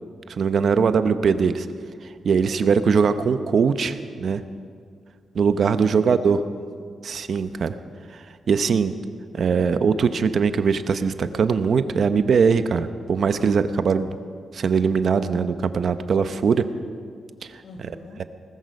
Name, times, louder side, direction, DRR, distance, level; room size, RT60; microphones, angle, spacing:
voice 1, 0.3-1.7 2.2-4.4 5.3-6.4 7.0-7.7 8.1-8.9 9.3-14.1 14.5-16.7 17.5-17.6, right 6 dB, 60° right, 11 dB, 0.8 m, -21 dB
voice 2, 5.8-6.9 17.6-18.2, left 3 dB, 70° left, 5 dB, 1.8 m, -43 dB
19.5 x 14.0 x 5.3 m, 2.1 s
cardioid pair, 100°, 0 cm